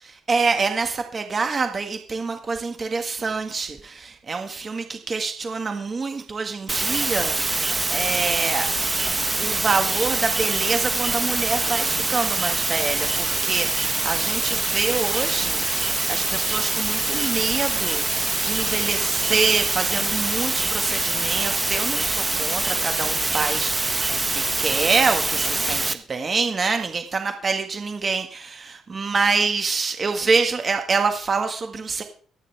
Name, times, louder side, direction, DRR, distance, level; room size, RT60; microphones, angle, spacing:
voice 1, 0.0-8.7 9.4-32.0, right 4 dB, 40° right, 5 dB, 1.7 m, -26 dB
sound 1, 6.7-25.9, right 2 dB, 20° right, 1.0 m, -24 dB
25.5 x 9.0 x 3.4 m, 0.42 s
cardioid pair, 90°, 0 cm